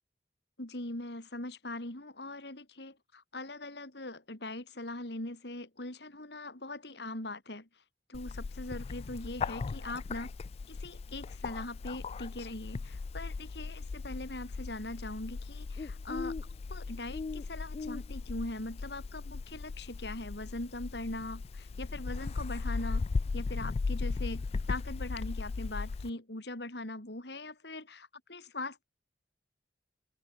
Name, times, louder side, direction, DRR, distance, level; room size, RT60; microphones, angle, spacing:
voice 1, 0.6-7.7 8.1-10.3 10.7-16.4 16.7-23.1 23.3-28.8, left 2 dB, 65° left, 3.4 m, -41 dB
Bird, 8.1-26.1, left 4 dB, 35° left, 0.3 m, -37 dB
head